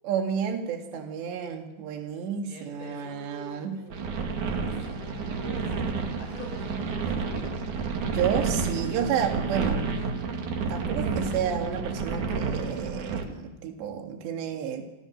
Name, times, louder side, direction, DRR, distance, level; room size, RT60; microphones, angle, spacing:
voice 1, 0.0-3.8 8.1-9.8 10.7-14.8, right 7 dB, 75° right, 4 dB, 4.3 m, -31 dB
voice 2, 2.4-7.6, left 2 dB, 80° left, 3 dB, 8.4 m, -45 dB
sound 1, 3.9-13.2, right 4 dB, 50° right, 3.3 m, -30 dB
27.5 x 27.5 x 6.6 m, 0.99 s
omnidirectional pair, 5.1 m